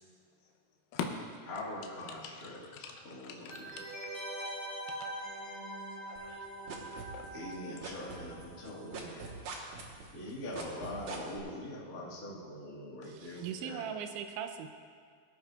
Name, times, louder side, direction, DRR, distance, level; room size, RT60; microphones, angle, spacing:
voice 1, 0.9-1.4 2.1-4.1 4.4-4.5 4.9-5.1 5.9-7.4 9.3-10.1, left 6 dB, 90° left, 2 dB, 1.9 m, -45 dB
voice 2, 1.5-2.6 3.0-3.5 6.3-6.4 7.3-9.4 10.1-13.9, left 1 dB, 55° left, -7 dB, 0.9 m, -43 dB
sound 1, 3.5-9.0 9.2-9.3, right 1 dB, 15° left, 2.6 m, -43 dB
sound 2, 6.2-7.5 7.8-11.4, right 5 dB, 65° right, 2.2 m, -43 dB
voice 3, 13.0-14.7, right 8 dB, 85° right, 7 dB, 2.5 m, -40 dB
19.0 x 9.6 x 2.4 m, 2.1 s
omnidirectional pair, 4.9 m